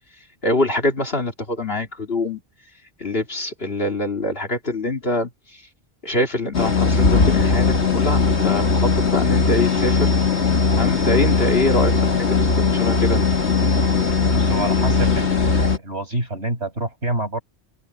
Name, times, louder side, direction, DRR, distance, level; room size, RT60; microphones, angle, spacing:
voice 1, 0.4-2.4 3.0-5.3 6.0-10.1 10.8-11.9 12.3-13.2, left 1 dB, 65° left, 2.7 m, -24 dB
sound 1, 6.5-15.8, left 4 dB, 85° left, 2.6 m, -19 dB
voice 2, 14.3-17.4, right 2 dB, 80° right, 6.3 m, -27 dB
omnidirectional pair, 1.1 m